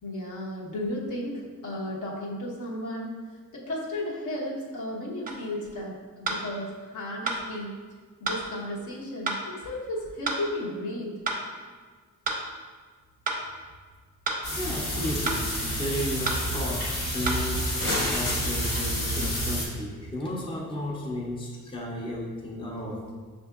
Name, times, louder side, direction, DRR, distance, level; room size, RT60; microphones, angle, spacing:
voice 1, 0.0-3.1 3.5-7.7 8.2-11.2, left 1 dB, 65° left, -4 dB, 1.0 m, -34 dB
sound 1, 5.3-5.4 6.3-6.4 7.3-7.4 8.3-8.4 9.3-9.4 10.3-10.4 11.3-11.4 12.3-12.4 13.3-13.4 14.3-14.4 15.3-15.4 16.3-16.4 17.3-17.4, right 3 dB, 25° right, 0.6 m, -29 dB
sound 2, 14.4-19.7, equal, 90° left, 1.2 m, -29 dB
voice 2, 14.5-17.7 18.0-23.1, left 1 dB, 15° left, -3 dB, 0.6 m, -33 dB
6.1 x 2.7 x 2.3 m, 1.5 s
cardioid pair, 110°, 34 cm